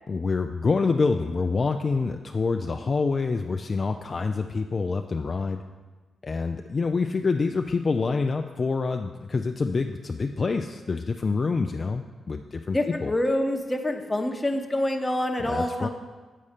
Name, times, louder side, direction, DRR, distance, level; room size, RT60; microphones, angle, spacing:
voice 1, 0.1-5.6 6.2-13.1 15.4-15.9, left 4 dB, 45° left, 5 dB, 0.3 m, -26 dB
voice 2, 12.7-15.9, left 1 dB, 15° left, 4 dB, 0.9 m, -26 dB
8.4 x 4.2 x 5.0 m, 1.3 s
cardioid pair, 60°, 0 cm